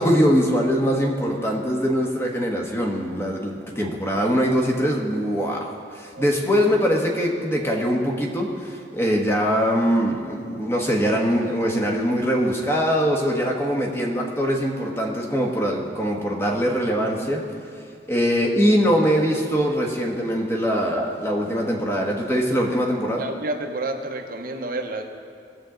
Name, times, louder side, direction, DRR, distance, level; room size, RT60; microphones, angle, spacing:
voice 1, 0.0-17.4 18.1-23.2, equal, 15° left, 0 dB, 1.3 m, -22 dB
voice 2, 23.2-25.0, right 2 dB, 55° right, 4 dB, 0.9 m, -29 dB
18.5 x 7.6 x 3.9 m, 2.3 s
head